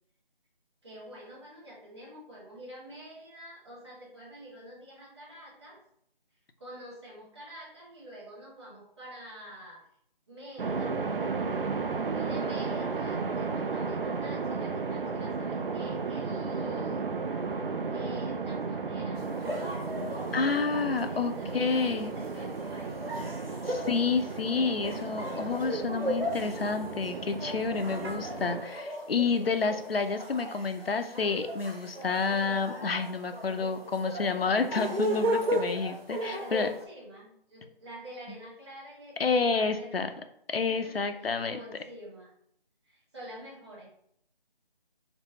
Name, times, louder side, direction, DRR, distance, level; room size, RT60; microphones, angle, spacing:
voice 1, 0.8-5.8 6.6-9.8 10.3-11.0 12.1-17.0 17.9-19.2 20.1-23.7 24.1-24.3 36.2-40.2 40.7-42.3 42.8-43.9, equal, 30° right, -5 dB, 1.4 m, -47 dB
sound 1, 10.6-28.6, right 4 dB, 65° right, 0.5 m, -34 dB
sound 2, 19.2-36.8, equal, 85° right, 1.1 m, -36 dB
voice 2, 20.3-22.1 23.6-36.7 39.2-40.1 40.5-41.6, left 4 dB, 75° left, 8 dB, 0.5 m, -29 dB
4.4 x 2.0 x 4.0 m, 0.70 s
figure-of-eight pair, 160°, 29 cm